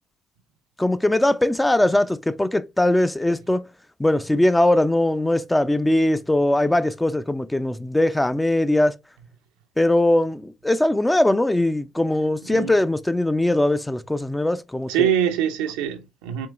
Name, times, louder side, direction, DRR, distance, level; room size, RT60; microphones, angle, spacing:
voice 1, 0.8-3.6 4.0-8.9 9.8-15.1, left 1 dB, 10° left, 0.5 m, -20 dB
voice 2, 12.4-12.7 14.9-16.5, right 10 dB, 90° right, 0.6 m, -23 dB
4.6 x 3.0 x 2.5 m
supercardioid pair, 60°, 0 cm